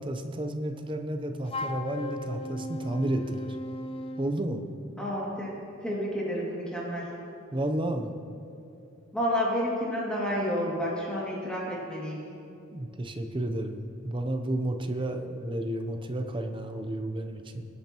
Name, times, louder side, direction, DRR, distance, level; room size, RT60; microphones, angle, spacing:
voice 1, 0.0-3.5 4.2-4.6 7.5-8.2 12.7-17.7, right 1 dB, 25° right, 6 dB, 0.7 m, -32 dB
Wind instrument woodwind instrument, 1.5-4.4, left 2 dB, 25° left, 0.5 m, -36 dB
voice 2, 5.0-5.5 5.8-7.1 9.1-12.2, equal, 5° left, -6 dB, 2.4 m, -30 dB
21.5 x 8.7 x 3.0 m, 2.7 s
head